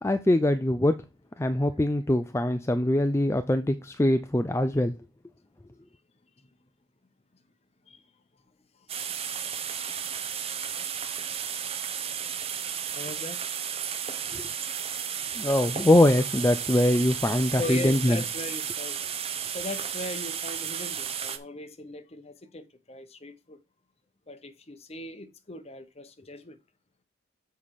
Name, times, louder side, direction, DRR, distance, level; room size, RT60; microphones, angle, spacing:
voice 1, 0.0-1.0 1.4-4.9 14.3-14.5 15.4-18.2, left 1 dB, 15° left, 0.4 m, -23 dB
sound 1, 8.9-21.4, right 8 dB, 30° right, 0.8 m, -33 dB
voice 2, 9.8-10.1 10.4-10.5 12.9-13.4 17.6-19.0 19.5-23.6 24.3-26.6, left 2 dB, 30° left, 0.8 m, -39 dB
7.1 x 5.5 x 4.8 m
head